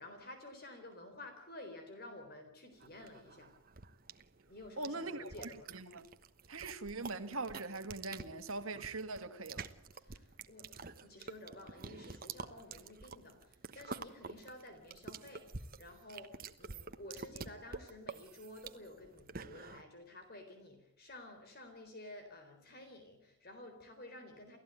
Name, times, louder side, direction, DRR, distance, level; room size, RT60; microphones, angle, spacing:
voice 1, 0.0-3.5 4.5-5.7 9.9-24.6, left 1 dB, 45° left, 4.0 m, -52 dB
sound 1, 2.8-19.8, right 4 dB, 40° right, 1.1 m, -48 dB
voice 2, 4.8-6.1 6.5-9.7, right 3 dB, 70° right, 1.9 m, -42 dB
29.5 x 15.0 x 9.3 m
head